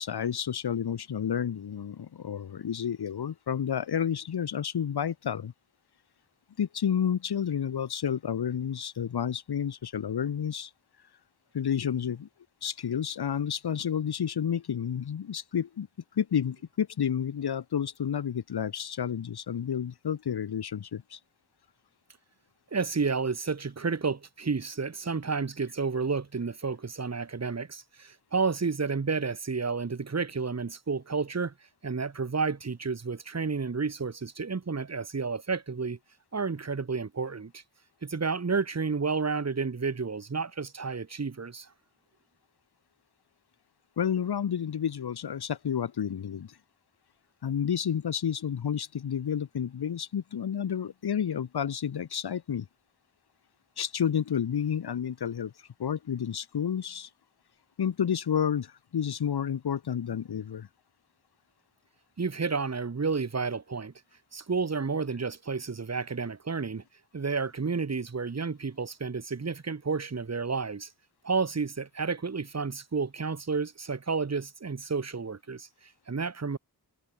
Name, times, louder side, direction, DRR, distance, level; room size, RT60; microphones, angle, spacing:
voice 1, 0.0-5.5 6.6-10.7 11.5-12.3 12.6-15.9 16.1-21.2 44.0-46.6 47.4-52.7 53.8-57.1 57.8-60.7, left 8 dB, 75° left, 1.8 m, -30 dB
voice 2, 22.7-31.5 31.8-36.0 36.3-37.6 38.0-41.7 62.2-63.9 64.3-66.8 67.1-70.9 71.2-76.6, right 4 dB, 40° right, 3.8 m, -31 dB
wide cardioid pair, 95°, 39 cm